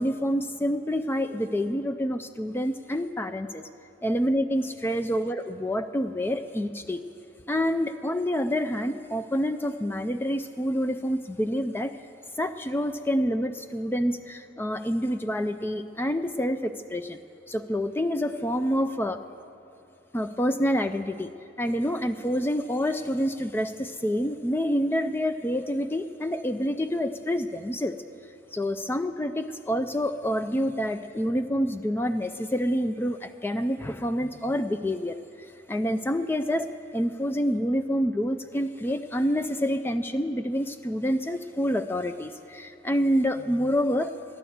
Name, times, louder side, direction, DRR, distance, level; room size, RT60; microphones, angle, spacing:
voice 1, 0.0-3.6 4.0-5.4 5.6-7.0 7.5-11.9 12.4-17.2 17.5-19.2 20.1-21.3 21.6-27.9 28.5-35.2 35.7-36.7 36.9-44.1, equal, 10° left, 9 dB, 0.3 m, -27 dB
13.0 x 11.0 x 7.9 m, 2.6 s
head